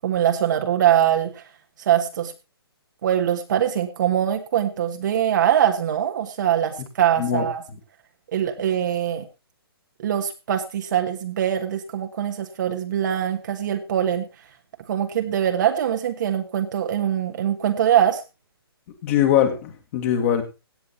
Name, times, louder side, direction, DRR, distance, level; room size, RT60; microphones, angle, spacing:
voice 1, 0.0-1.4 1.8-2.3 3.0-7.6 8.3-9.2 10.0-14.3 14.9-18.2, right 10 dB, 50° right, 1.4 m, -22 dB
voice 2, 19.0-20.4, left 9 dB, 35° left, 2.2 m, -21 dB
16.5 x 8.5 x 4.3 m
hypercardioid pair, 155°, 13 cm